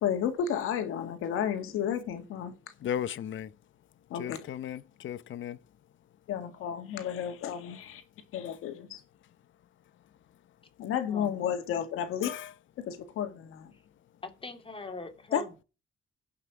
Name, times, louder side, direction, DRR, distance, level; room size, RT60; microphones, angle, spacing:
voice 1, 0.0-2.5 4.1-4.4 6.3-8.0 8.3-9.0 10.8-12.3 12.8-13.7 15.3-15.4, left 9 dB, 90° left, 1.9 m, -32 dB
voice 2, 2.8-3.6 4.1-5.6 12.2-12.5, left 10 dB, 65° left, 0.8 m, -36 dB
voice 3, 11.1-11.5 14.2-15.6, left 3 dB, 25° left, 2.5 m, -42 dB
17.0 x 5.9 x 4.8 m
cardioid pair, 90°, 21 cm